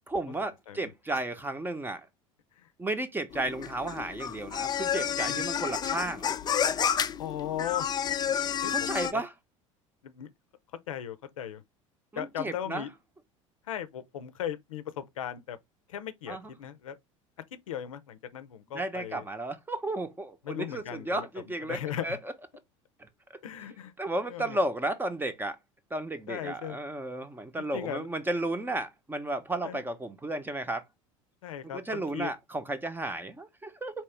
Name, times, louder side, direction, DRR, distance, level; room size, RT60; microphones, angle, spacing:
voice 1, 0.1-2.0 2.8-6.3 8.7-9.3 12.1-12.8 16.3-16.4 18.7-21.8 22.0-22.2 24.0-25.6 25.9-30.8 31.7-34.0, right 2 dB, 10° right, 0.8 m, -33 dB
sound 1, 3.3-9.1, left 8 dB, 25° left, 0.4 m, -30 dB
voice 2, 7.2-7.9 8.6-8.7 9.0-9.2 10.0-10.3 10.9-11.6 12.2-12.9 13.6-15.6 15.9-17.0 17.5-19.3 20.4-22.2 23.4-23.9 24.3-24.6 26.3-26.8 27.6-28.1 29.6-29.8 31.4-32.3, left 10 dB, 80° left, 0.6 m, -37 dB
4.4 x 3.0 x 3.3 m
hypercardioid pair, 75°, 17 cm